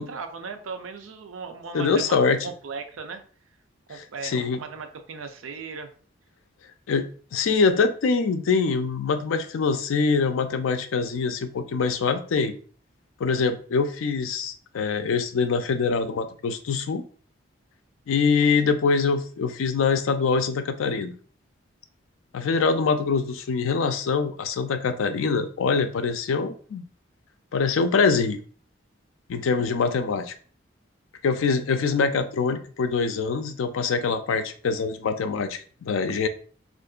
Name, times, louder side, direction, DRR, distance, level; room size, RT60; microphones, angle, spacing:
voice 1, 0.0-3.2 3.9-5.9 29.9-30.1, right 5 dB, 90° right, 6 dB, 0.5 m, -37 dB
voice 2, 1.7-2.5 4.2-4.6 6.9-12.5 13.2-17.0 18.1-21.1 22.3-26.8 27.5-28.4 29.3-30.3 31.2-36.3, left 5 dB, 90° left, 9 dB, 0.4 m, -24 dB
3.6 x 2.5 x 2.4 m, 0.42 s
head